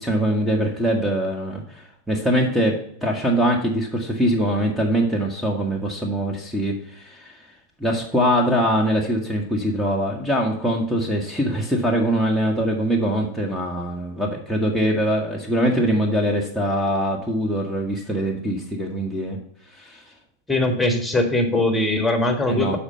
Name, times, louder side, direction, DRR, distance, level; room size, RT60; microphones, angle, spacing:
voice 1, 0.0-7.3 7.8-19.4 19.8-20.0 22.5-22.8, equal, 5° right, -1 dB, 1.2 m, -23 dB
voice 2, 20.5-22.8, left 2 dB, 10° left, 4 dB, 1.5 m, -21 dB
6.8 x 4.3 x 6.5 m, 0.69 s
hypercardioid pair, 95°, 0 cm